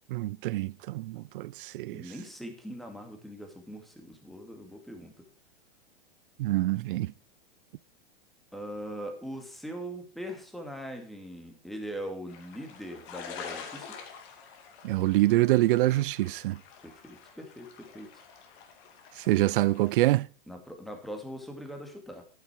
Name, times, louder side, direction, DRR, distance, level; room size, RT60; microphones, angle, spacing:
voice 1, 0.1-2.0 6.4-7.1 14.8-16.6 19.3-20.3, right 17 dB, 60° right, 0.5 m, -25 dB
voice 2, 1.9-5.2 8.5-14.0 16.8-18.2 20.5-22.2, equal, ahead, 2.3 m, -41 dB
sound 1, 12.3-19.9, left 6 dB, 45° left, 2.7 m, -47 dB
10.5 x 9.2 x 4.6 m
hypercardioid pair, 120°, 30 cm